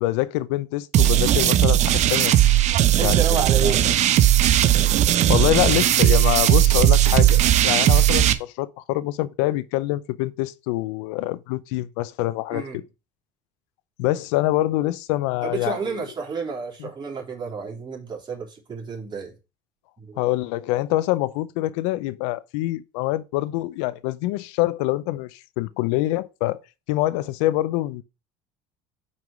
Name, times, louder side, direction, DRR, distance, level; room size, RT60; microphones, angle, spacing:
voice 1, 0.0-2.6 3.0-3.2 3.6-3.8 5.3-12.8 14.0-16.0 16.8-16.9 20.2-26.6 26.9-28.0, left 17 dB, 80° left, 0.6 m, -25 dB
sound 1, 0.9-8.3, right 12 dB, 55° right, 0.8 m, -17 dB
voice 2, 3.0-3.8 12.5-12.8 15.4-19.3 20.0-20.2, right 5 dB, 30° right, 3.4 m, -30 dB
5.5 x 4.8 x 5.8 m
supercardioid pair, 100°, 15 cm